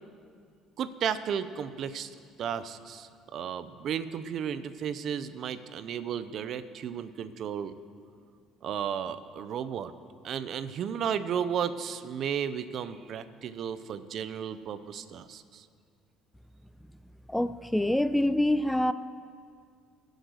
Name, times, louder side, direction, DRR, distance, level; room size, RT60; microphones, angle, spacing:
voice 1, 0.8-2.1 2.4-7.7 8.6-9.9 10.2-15.6, right 8 dB, 55° right, 13 dB, 0.6 m, -34 dB
voice 2, 17.3-18.9, left 1 dB, 5° left, 14 dB, 0.3 m, -25 dB
19.5 x 6.5 x 6.5 m, 2.2 s
cardioid pair, 120°, 0 cm